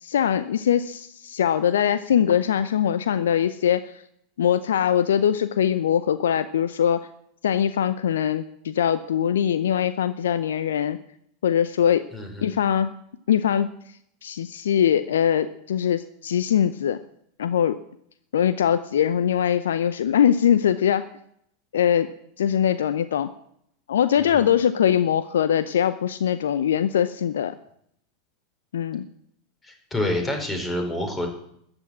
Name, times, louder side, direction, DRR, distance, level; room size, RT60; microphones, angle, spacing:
voice 1, 0.0-3.8 4.4-7.1 7.4-11.0 11.4-12.0 12.4-12.9 13.3-13.7 14.2-17.0 17.4-17.8 18.3-21.1 21.7-22.1 22.4-23.3 23.9-27.5 28.7-29.0, left 9 dB, 70° left, 13 dB, 0.7 m, -22 dB
voice 2, 12.1-12.6 24.2-24.5 29.6-31.3, left 1 dB, 15° left, 4 dB, 4.6 m, -28 dB
14.0 x 9.0 x 8.6 m, 0.72 s
figure-of-eight pair, 90°, 0 cm